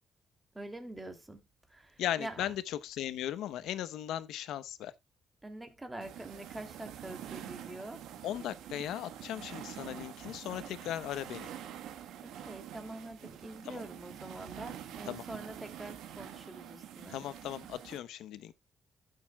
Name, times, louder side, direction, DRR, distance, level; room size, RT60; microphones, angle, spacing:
voice 1, 0.5-1.4 1.7-2.5 5.4-8.0 12.2-17.2, right 1 dB, 15° right, 2.6 m, -45 dB
voice 2, 2.0-4.9 8.2-11.5 13.6-13.8 15.1-15.2 17.1-18.5, left 12 dB, 85° left, 0.8 m, -37 dB
sound 1, 6.0-18.0, right 10 dB, 85° right, 1.4 m, -46 dB
15.5 x 6.7 x 2.2 m
cardioid pair, 90°, 0 cm